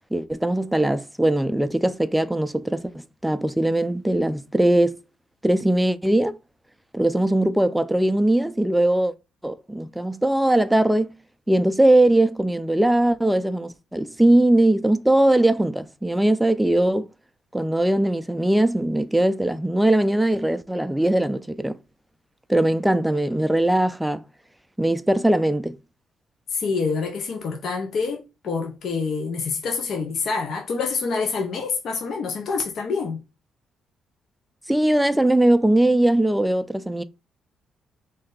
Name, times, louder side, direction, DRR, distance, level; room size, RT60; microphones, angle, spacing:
voice 1, 0.1-5.0 5.4-6.4 6.9-9.1 9.4-11.1 11.5-17.1 17.5-21.8 22.5-24.2 24.8-25.8 34.7-37.0, right 1 dB, 5° right, 0.3 m, -20 dB
voice 2, 26.5-33.2, left 4 dB, 65° left, 0.7 m, -27 dB
3.2 x 2.7 x 3.8 m
cardioid pair, 90°, 0 cm